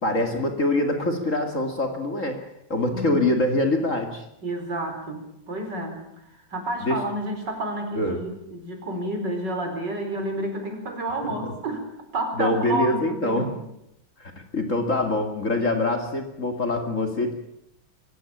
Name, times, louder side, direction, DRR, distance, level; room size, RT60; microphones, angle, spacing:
voice 1, 0.0-2.4 2.7-4.2 6.8-7.0 8.0-8.2 12.4-13.6 14.2-17.3, left 2 dB, 40° left, 5 dB, 2.6 m, -24 dB
voice 2, 2.9-3.2 4.4-6.0 6.5-11.8 12.1-13.6, right 1 dB, 55° right, 4 dB, 5.2 m, -30 dB
24.5 x 16.5 x 8.7 m, 0.82 s
omnidirectional pair, 2.2 m